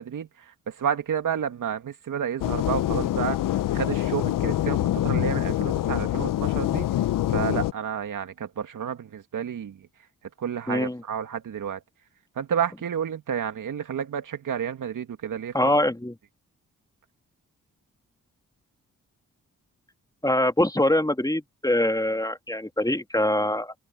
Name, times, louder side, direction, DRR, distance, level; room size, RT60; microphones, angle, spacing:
voice 1, 0.0-3.4 3.7-6.9 7.3-9.8 10.4-11.8 12.4-15.5, right 8 dB, 70° right, 2.5 m, -30 dB
sound 1, 2.4-7.7, left 13 dB, 85° left, 0.8 m, -25 dB
voice 2, 10.7-11.0 15.5-16.1 20.2-23.7, left 1 dB, 10° left, 2.5 m, -23 dB
supercardioid pair, 45°, 32 cm